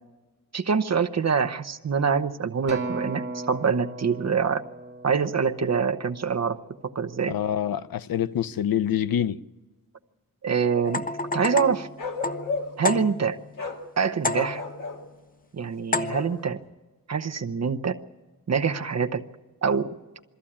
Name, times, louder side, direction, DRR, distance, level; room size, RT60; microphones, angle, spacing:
voice 1, 0.5-4.6 5.0-7.3 10.4-11.0 11.3-11.9 12.8-13.4 14.0-14.6 15.5-16.6 17.1-18.0 18.5-19.2 19.6-19.9, right 6 dB, 50° right, 0.9 m, -25 dB
Acoustic guitar, 2.7-7.1 7.7-7.9, right 2 dB, 30° right, 2.4 m, -37 dB
voice 2, 7.3-9.4, left 10 dB, 90° left, 0.7 m, -26 dB
sound 1, 10.9-13.5 14.2-14.9 15.9-16.5, left 3 dB, 25° left, 0.7 m, -30 dB
Bark, 12.0-12.9 13.6-13.8 14.3-15.0 16.1-16.4, left 4 dB, 65° left, 2.2 m, -33 dB
22.5 x 14.0 x 8.7 m
wide cardioid pair, 145°, 34 cm